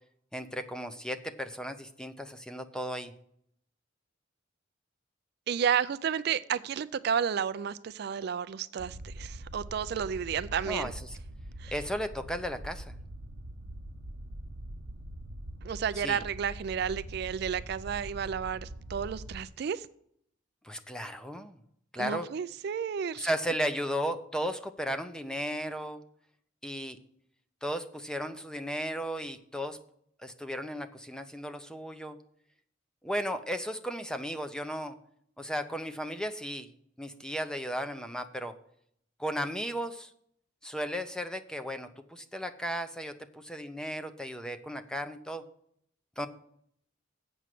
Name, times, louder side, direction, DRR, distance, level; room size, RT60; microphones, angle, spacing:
voice 1, 0.3-3.1 10.7-11.2 11.7-12.9 16.0-16.2 20.6-21.6 21.9-22.3 23.1-26.0 26.6-27.0 27.6-29.8 30.2-32.2 33.0-35.0 35.4-36.7 37.0-38.6 39.2-40.1 40.6-45.5 46.2-46.3, equal, 5° left, 9 dB, 0.6 m, -35 dB
voice 2, 5.5-10.9 11.6-11.7 15.6-19.9 22.0-23.3, right 7 dB, 55° right, 15 dB, 0.3 m, -32 dB
sound 1, 8.8-19.4, right 1 dB, 80° right, 0.8 m, -43 dB
8.0 x 6.2 x 7.5 m, 0.69 s
head